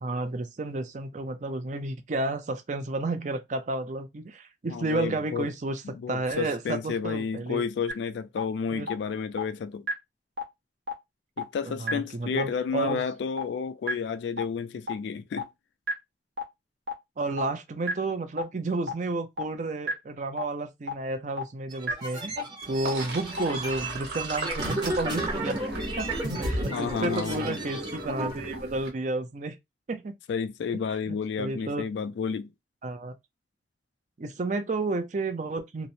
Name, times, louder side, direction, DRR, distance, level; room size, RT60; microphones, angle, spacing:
voice 1, 0.0-5.8 6.1-7.6 8.7-8.9 11.6-13.0 17.2-22.3 22.7-25.6 26.0-26.1 26.4-29.6 29.9-30.1 31.1-31.8 32.8-33.1 34.2-35.9, right 2 dB, 45° right, 0.5 m, -31 dB
voice 2, 4.7-5.5 5.9-9.9 11.4-15.5 26.7-27.6 30.3-32.5, left 6 dB, 75° left, 0.3 m, -31 dB
sound 1, 7.9-8.0 8.4-8.5 8.9-9.0 9.4-9.5 9.9-10.0 10.4-10.5 10.9-11.0 11.4-11.5 11.9-12.0 12.4-12.5 12.9-13.0 13.4-13.5 13.9-14.0 14.4-14.5 14.9-15.0 15.4-15.5 15.9-16.0 16.4-16.5 16.9-17.0 17.4-17.5 17.9-18.0 18.4-18.5 18.9-19.0 19.4-19.5 19.9-20.0 20.4-20.5 20.9-21.0 21.4-21.5 21.9-22.0 22.4-22.5 22.9-23.0 23.4-23.5, left 1 dB, 80° right, 0.8 m, -29 dB
sound 2, 21.7-28.4, right 1 dB, 25° right, 0.8 m, -33 dB
Sink (filling or washing), 22.6-28.9, right 2 dB, 60° right, 1.1 m, -37 dB
2.9 x 2.0 x 2.6 m
head